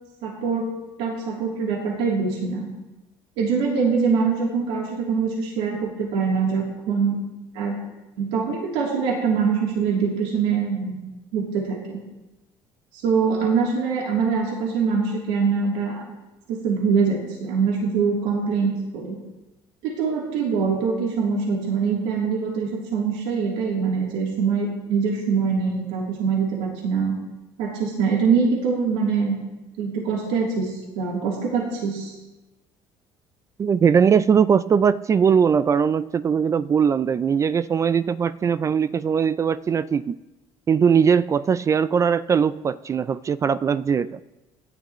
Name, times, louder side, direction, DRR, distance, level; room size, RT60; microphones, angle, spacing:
voice 1, 0.2-0.7 1.0-2.7 3.4-7.2 7.5-7.8 8.2-11.0 11.3-12.0 12.9-16.0 16.5-19.2 19.8-27.2 27.6-29.4 29.8-32.1, right 5 dB, 85° right, -3 dB, 3.1 m, -23 dB
voice 2, 33.6-40.2 40.7-44.2, right 7 dB, 30° right, 16 dB, 0.3 m, -20 dB
27.5 x 11.5 x 3.1 m, 1.0 s
cardioid pair, 120°, 11 cm